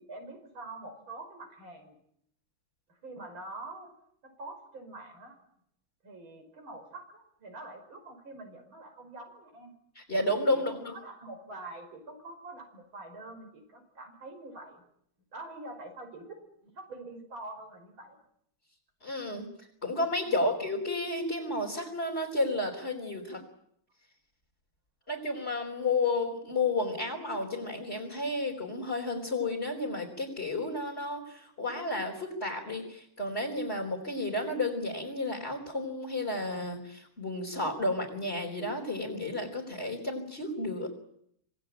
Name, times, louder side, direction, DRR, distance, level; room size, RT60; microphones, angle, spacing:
voice 1, 0.0-2.0 2.9-3.9 4.2-5.4 6.0-9.7 10.5-14.8 15.3-18.2 20.2-20.5, right 2 dB, 90° right, 4 dB, 6.2 m, -45 dB
voice 2, 9.9-10.9 19.0-19.5 19.8-23.4 25.1-40.9, left 2 dB, 30° left, -3 dB, 4.5 m, -32 dB
26.0 x 18.5 x 9.1 m, 0.72 s
omnidirectional pair, 2.1 m